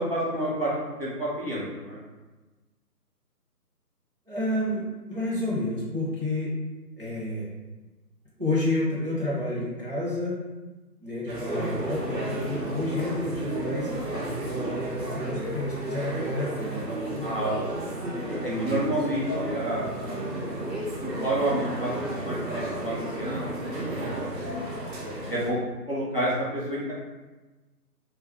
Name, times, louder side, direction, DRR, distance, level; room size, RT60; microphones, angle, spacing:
voice 1, 0.0-2.0 14.4-14.7 17.2-17.8 18.4-20.2 21.0-21.9 22.2-23.4 23.7-24.1 24.9-25.6 25.9-26.9, right 1 dB, 40° left, -8 dB, 0.5 m, -29 dB
voice 2, 4.3-6.5 7.0-7.5 8.4-10.4 11.0-13.9 14.4-17.3 18.5-18.8, left 1 dB, 35° right, -8 dB, 0.5 m, -30 dB
sound 1, 11.3-25.5, right 1 dB, 90° right, 0.9 m, -33 dB
2.2 x 2.1 x 3.4 m, 1.2 s
figure-of-eight pair, 155°, 49 cm